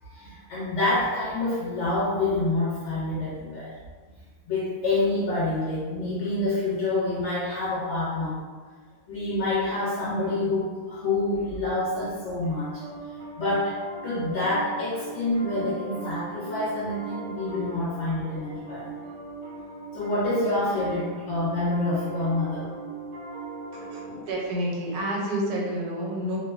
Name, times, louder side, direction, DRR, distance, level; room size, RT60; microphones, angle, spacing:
voice 1, 0.0-3.7 4.5-8.4 9.1-12.8 13.4-13.8 14.0-18.9 19.9-22.7 23.8-24.3, left 2 dB, 65° left, -7 dB, 0.7 m, -27 dB
Piano, 11.6-24.1, right 3 dB, 55° right, 0.6 m, -40 dB
voice 2, 23.7-26.4, right 1 dB, 80° right, -2 dB, 1.1 m, -29 dB
2.6 x 2.1 x 2.3 m, 1.5 s
omnidirectional pair, 1.6 m